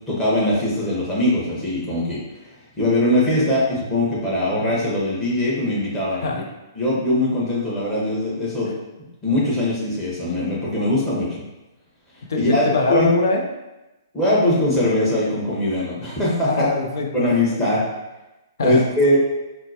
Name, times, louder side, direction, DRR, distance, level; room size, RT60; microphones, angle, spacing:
voice 1, 0.1-2.2 2.8-6.4 6.7-8.7 9.2-11.3 12.3-12.6 12.9-13.1 14.1-16.7 17.1-17.8 18.6-19.2, left 1 dB, 15° left, -8 dB, 1.3 m, -21 dB
voice 2, 12.3-13.4 16.5-17.3 18.6-18.8, left 3 dB, 70° left, 2 dB, 0.6 m, -22 dB
4.2 x 2.1 x 2.8 m, 1.0 s
hypercardioid pair, 135°, 2 cm